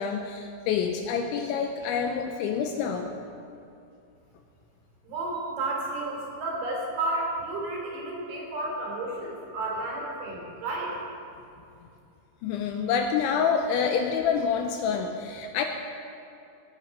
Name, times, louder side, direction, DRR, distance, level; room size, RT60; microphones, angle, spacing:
voice 1, 0.0-3.2 12.4-15.6, left 6 dB, 85° left, 4 dB, 2.8 m, -27 dB
voice 2, 5.0-10.9, right 2 dB, 55° right, -3 dB, 4.8 m, -32 dB
21.5 x 9.6 x 5.3 m, 2.7 s
omnidirectional pair, 5.9 m